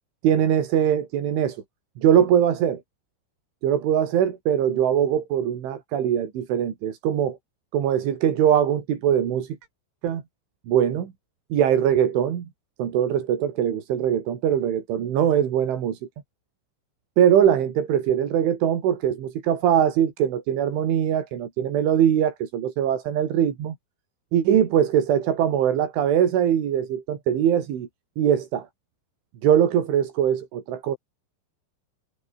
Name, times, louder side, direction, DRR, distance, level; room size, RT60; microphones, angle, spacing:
voice 1, 0.2-1.6 2.0-2.8 3.6-7.4 7.7-9.6 10.0-10.2 10.7-11.1 11.5-12.5 12.8-16.0 17.2-23.8 24.3-27.9 28.2-28.7 29.4-31.0, right 9 dB, 70° right, 5.4 m, -22 dB
omnidirectional pair, 5.7 m